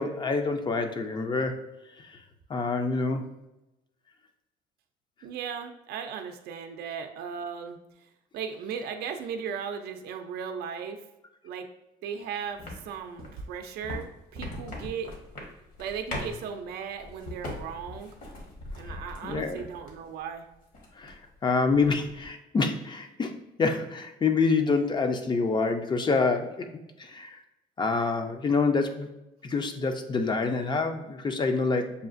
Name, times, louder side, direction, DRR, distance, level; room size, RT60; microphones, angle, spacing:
voice 1, 0.0-1.7 2.1-2.2 2.5-3.3 18.9-19.6 21.0-21.2 21.4-26.7 27.0-27.4 27.8-29.1 29.4-32.1, left 4 dB, 25° left, 7 dB, 0.5 m, -27 dB
voice 2, 5.2-11.0 11.4-11.7 12.0-15.1 15.8-18.1 18.8-20.5, right 7 dB, 70° right, 6 dB, 0.5 m, -37 dB
sound 1, 12.6-20.1 20.5-21.4 21.6-22.3, left 1 dB, 55° left, 1.3 m, -40 dB
6.7 x 2.4 x 2.5 m, 0.93 s
cardioid pair, 110°, 17 cm